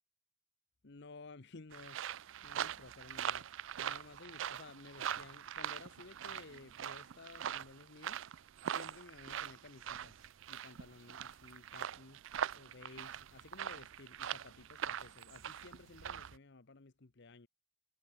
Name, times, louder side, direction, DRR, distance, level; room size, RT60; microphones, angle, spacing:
voice 1, 0.8-2.0 2.4-3.5 3.8-8.2 8.7-10.2 10.5-12.2 12.5-17.5, left 3 dB, 55° left, 0.9 m, -55 dB
sound 1, 1.7-16.4, right 9 dB, 65° right, 0.4 m, -42 dB
head